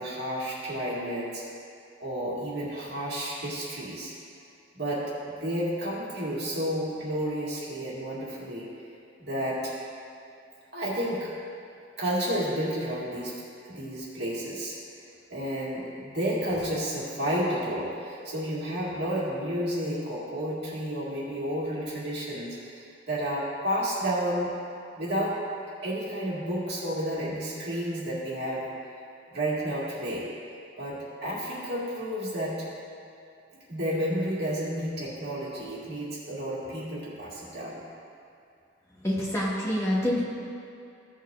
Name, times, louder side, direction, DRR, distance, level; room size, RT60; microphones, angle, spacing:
voice 1, 0.0-1.4 2.0-4.1 4.7-8.7 9.2-9.7 10.7-11.3 12.0-14.7 15.3-24.5 25.0-25.4 25.8-28.7 29.3-30.3 30.8-32.6 33.7-37.8, equal, 60° right, -7 dB, 2.2 m, -31 dB
voice 2, 39.0-40.2, equal, 15° left, -5 dB, 1.6 m, -26 dB
15.5 x 6.4 x 2.7 m, 2.6 s
head